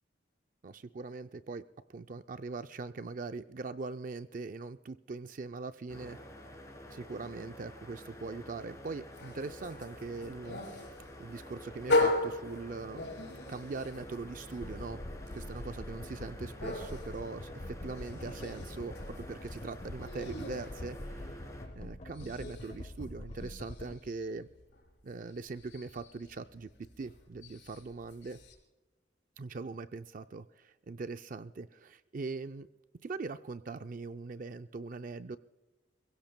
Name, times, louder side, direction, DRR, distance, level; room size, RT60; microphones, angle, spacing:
voice 1, 0.6-1.6 1.9-6.2 6.9-10.9 11.2-13.1 13.5-15.0 15.3-21.4 21.7-24.5 25.0-26.7 27.0-28.4 29.4-32.7 33.0-35.4, right 3 dB, 45° right, 10 dB, 0.4 m, -41 dB
sound 1, 5.9-21.7, equal, 15° left, 3.1 m, -49 dB
sound 2, 9.1-21.6 21.9-28.6, left 2 dB, 70° left, 5.1 m, -38 dB
sound 3, 14.6-24.0, left 1 dB, 40° left, 0.7 m, -45 dB
27.5 x 16.5 x 2.2 m, 1.2 s
head